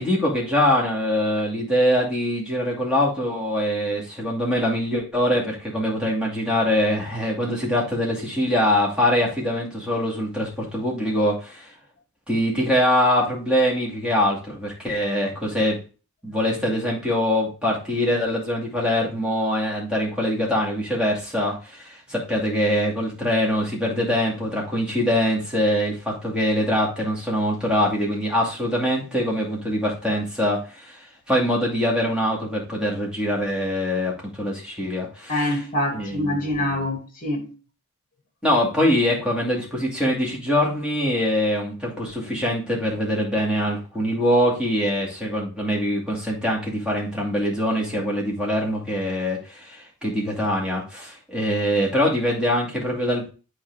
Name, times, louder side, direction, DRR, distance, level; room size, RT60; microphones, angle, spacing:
voice 1, 0.0-11.7 12.3-15.8 16.2-31.0 31.3-35.4 35.9-36.8 38.4-53.3, equal, 5° right, 2.4 m, -23 dB
voice 2, 35.3-37.5, left 1 dB, 40° left, 2.4 m, -25 dB
8.9 x 4.4 x 3.5 m
head